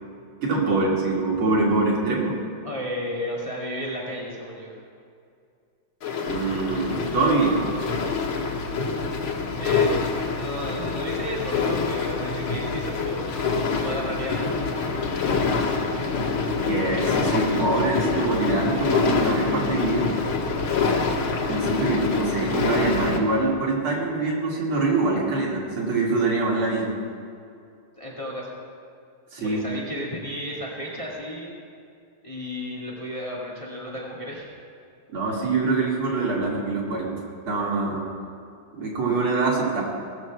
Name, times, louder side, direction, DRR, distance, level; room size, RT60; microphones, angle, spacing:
voice 1, 0.4-2.3 6.2-7.6 16.6-20.1 21.5-26.9 29.3-29.6 35.1-37.1 37.5-38.1 38.8-39.8, right 3 dB, 85° right, -4 dB, 3.5 m, -24 dB
voice 2, 2.6-4.8 9.6-9.9 10.3-13.3 13.7-14.5 28.0-28.6 29.4-31.5 32.2-34.5, equal, 15° left, -4 dB, 1.8 m, -33 dB
sound 1, 6.0-23.2, left 4 dB, 80° left, 2.3 m, -26 dB
17.5 x 6.2 x 7.4 m, 2.4 s
omnidirectional pair, 2.3 m